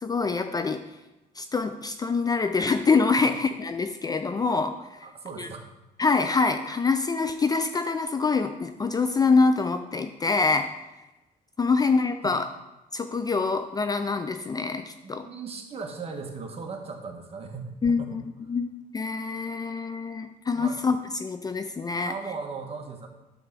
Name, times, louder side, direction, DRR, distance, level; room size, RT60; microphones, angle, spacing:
voice 1, 0.0-0.8 1.4-5.1 5.4-5.5 6.0-10.7 11.6-12.5 12.9-15.3 17.8-18.7 18.9-22.1, left 4 dB, 20° left, 8 dB, 0.4 m, -25 dB
voice 2, 5.0-5.7 11.8-11.9 12.2-12.3 15.0-18.2 20.6-20.8 22.0-23.1, right 4 dB, 35° right, 3 dB, 1.4 m, -38 dB
9.6 x 3.5 x 6.7 m, 0.99 s
cardioid pair, 110°, 17 cm